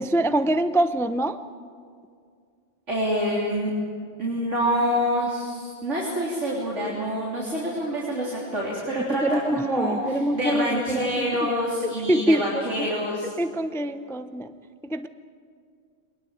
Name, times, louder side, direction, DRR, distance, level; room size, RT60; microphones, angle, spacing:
voice 1, 0.0-1.4 9.1-11.5 11.8-12.9 13.4-14.5 14.8-15.1, right 1 dB, 5° left, 10 dB, 0.5 m, -25 dB
voice 2, 2.9-3.7 4.2-13.3, equal, 80° right, -4 dB, 4.0 m, -26 dB
23.0 x 21.0 x 8.6 m, 2.2 s
omnidirectional pair, 1.2 m